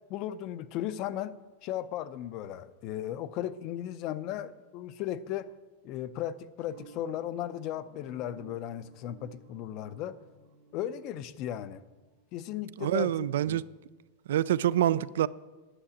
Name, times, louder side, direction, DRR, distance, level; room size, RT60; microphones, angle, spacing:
voice 1, 0.1-5.5 5.8-10.1 10.7-11.8 12.3-13.6, left 11 dB, 40° left, 0.5 m, -36 dB
sound 1, 6.6-12.8, right 5 dB, 60° right, 2.2 m, -56 dB
voice 2, 12.8-13.6 14.3-15.3, right 12 dB, 80° right, 0.3 m, -26 dB
9.9 x 5.9 x 8.5 m
supercardioid pair, 160°, 0 cm